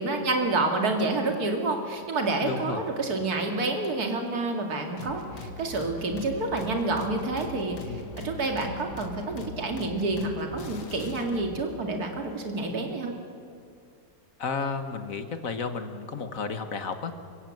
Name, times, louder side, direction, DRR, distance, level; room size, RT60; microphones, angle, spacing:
voice 1, 0.0-7.8 8.2-13.1, right 2 dB, 65° right, 3 dB, 2.8 m, -28 dB
voice 2, 2.4-2.8 7.9-8.1 14.4-17.1, left 4 dB, 55° left, 8 dB, 1.8 m, -32 dB
sound 1, 5.0-11.7, left 3 dB, 85° left, 2.2 m, -41 dB
28.0 x 17.0 x 7.9 m, 2.3 s
omnidirectional pair, 1.7 m